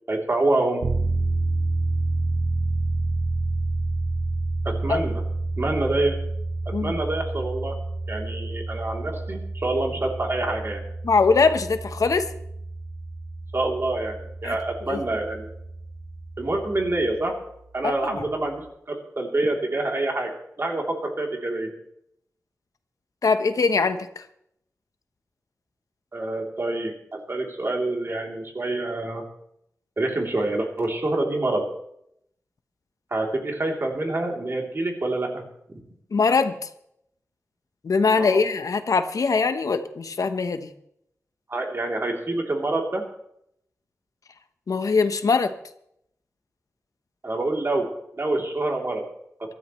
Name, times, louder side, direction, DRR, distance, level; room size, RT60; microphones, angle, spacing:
voice 1, 0.1-0.9 4.6-5.2 5.6-6.2 6.8-7.8 8.1-10.8 13.5-15.5 16.4-17.3 17.7-20.3 20.6-21.7 26.1-29.2 30.0-31.7 33.1-35.4 35.7-35.8 38.2-38.4 41.5-43.0 47.2-47.9 48.1-49.0, right 2 dB, 45° right, 0 dB, 3.1 m, -26 dB
sound 1, 0.8-17.2, right 2 dB, 75° right, 1.3 m, -29 dB
voice 2, 11.0-12.3 14.4-14.5 14.9-15.0 17.8-18.2 23.2-24.2 36.1-36.5 37.8-40.7 44.7-45.5, left 4 dB, 80° left, 9 dB, 0.9 m, -22 dB
23.0 x 13.0 x 3.1 m, 0.74 s
wide cardioid pair, 115°, 6 cm